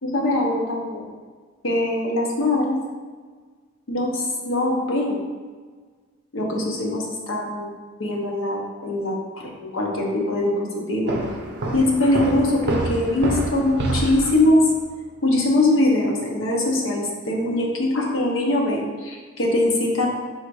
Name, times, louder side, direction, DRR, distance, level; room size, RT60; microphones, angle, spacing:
voice 1, 0.0-1.1 1.6-2.8 3.9-5.2 6.3-7.7 8.0-11.1 11.7-14.7 15.2-20.1, left 1 dB, 70° left, -1 dB, 0.8 m, -22 dB
sound 1, 11.1-14.8, right 2 dB, 55° right, 0.5 m, -27 dB
4.0 x 2.6 x 4.7 m, 1.5 s
head